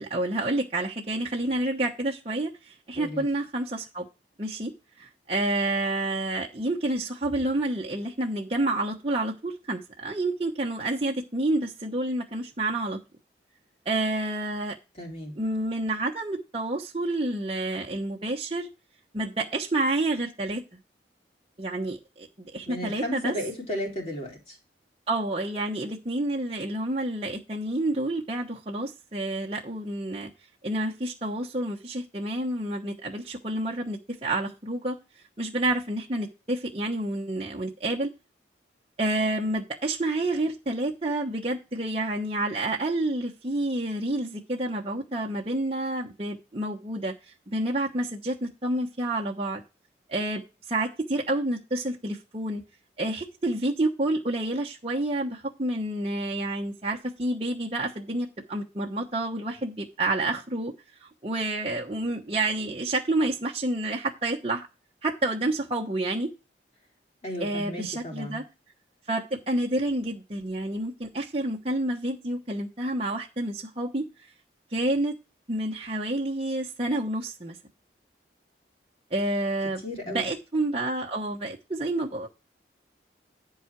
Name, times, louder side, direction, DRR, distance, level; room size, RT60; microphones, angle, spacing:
voice 1, 0.0-4.0 4.4-4.7 5.0-13.0 13.8-14.7 15.4-18.7 19.1-20.6 21.6-22.3 22.5-23.3 25.1-30.3 30.6-35.0 35.4-38.1 39.0-47.1 47.5-49.6 50.1-50.4 50.7-52.6 53.0-60.7 61.0-64.6 65.0-66.3 67.4-68.4 69.1-74.1 74.7-75.1 75.5-77.6 79.1-82.3, right 2 dB, 35° right, 1.1 m, -29 dB
voice 2, 3.0-3.3 15.0-15.3 22.7-24.6 67.2-68.4 79.8-80.3, left 1 dB, 35° left, 3.8 m, -34 dB
11.0 x 4.8 x 4.6 m
head